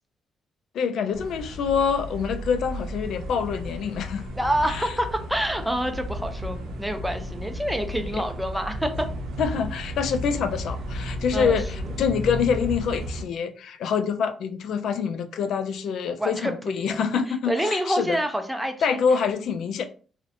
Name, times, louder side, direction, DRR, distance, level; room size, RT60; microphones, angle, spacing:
voice 1, 0.7-4.3 4.7-4.9 8.1-8.2 9.4-18.2 18.8-19.8, left 6 dB, 70° left, 0.3 m, -26 dB
sound 1, 1.1-13.2, equal, 85° right, 0.6 m, -34 dB
voice 2, 4.4-9.1 11.3-11.6 16.2-17.0 17.5-19.0, right 1 dB, 5° right, 0.4 m, -27 dB
2.5 x 2.1 x 2.6 m
cardioid pair, 90°, 0 cm